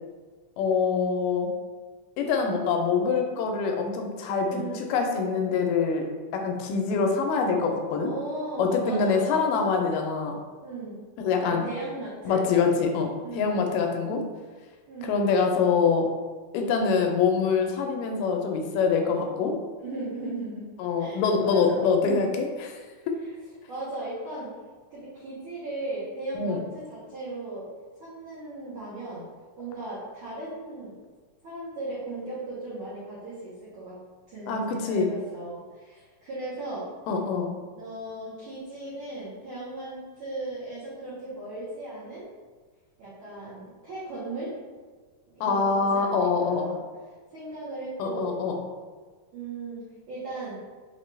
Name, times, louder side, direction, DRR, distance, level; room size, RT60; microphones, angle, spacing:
voice 1, 0.6-1.5 2.2-6.1 6.3-8.1 8.6-10.4 11.2-11.7 12.3-14.2 15.0-16.1 16.5-19.6 20.8-22.8 26.3-26.6 34.5-35.1 37.1-37.5 45.4-46.7 48.0-48.6, left 5 dB, 90° left, 3 dB, 2.2 m, -25 dB
voice 2, 4.4-4.9 8.0-9.5 10.6-11.0 11.4-12.5 13.2-13.7 14.9-15.2 19.8-20.7 21.0-21.9 23.7-24.5 24.9-27.7 28.0-29.3 29.6-31.0 31.4-34.0 34.3-36.9 37.7-42.3 43.0-44.5 45.3-46.8 47.3-48.3 49.3-50.6, right 2 dB, 85° right, -9 dB, 1.1 m, -37 dB
5.3 x 2.2 x 3.1 m, 1.4 s
omnidirectional pair, 3.7 m